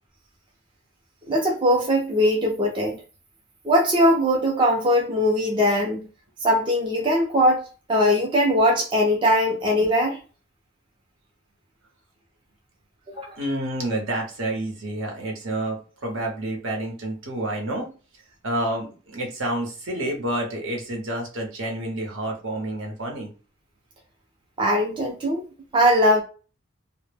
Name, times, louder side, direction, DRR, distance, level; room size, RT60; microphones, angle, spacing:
voice 1, 1.3-3.0 3.6-6.1 6.4-7.6 7.9-10.2 13.1-13.4 24.6-25.4 25.7-26.2, equal, 25° right, 0.4 m, -20 dB
voice 2, 13.4-17.9 18.4-23.3, right 1 dB, 75° right, 0.8 m, -29 dB
2.1 x 2.0 x 3.2 m
head